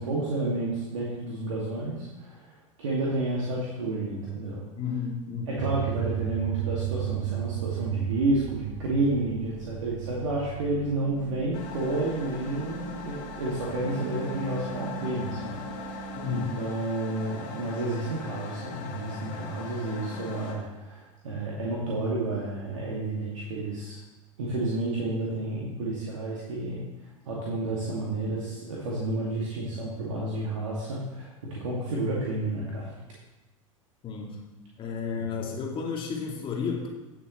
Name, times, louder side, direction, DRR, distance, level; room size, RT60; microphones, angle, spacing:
voice 1, 0.0-2.5 2.8-4.6 5.5-24.0 24.4-26.8 27.3-32.9 35.2-35.3, right 2 dB, 65° right, -5 dB, 2.2 m, -30 dB
voice 2, 4.8-5.7 16.1-16.5 34.0-34.4 34.8-36.9, left 6 dB, 30° left, -1 dB, 2.4 m, -32 dB
sound 1, 5.6-16.5, right 16 dB, 40° right, 0.5 m, -36 dB
sound 2, 11.5-20.5, left 5 dB, 50° left, 2.8 m, -41 dB
17.0 x 6.9 x 3.1 m, 1.0 s
figure-of-eight pair, 85°, 17 cm